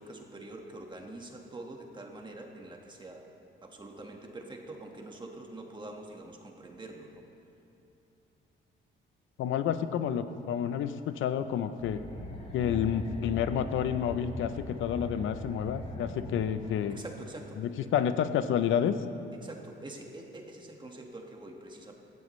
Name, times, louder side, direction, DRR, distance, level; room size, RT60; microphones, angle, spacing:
voice 1, 0.0-3.2 3.6-7.2 16.9-17.6 19.4-21.9, right 2 dB, 25° right, 1 dB, 1.6 m, -45 dB
voice 2, 9.4-12.0 12.5-17.0 17.6-19.0, left 9 dB, 80° left, 11 dB, 0.7 m, -29 dB
sound 1, 11.8-17.0, left 1 dB, 30° left, 2.1 m, -40 dB
17.0 x 14.5 x 3.2 m, 2.9 s
cardioid pair, 105°, 20 cm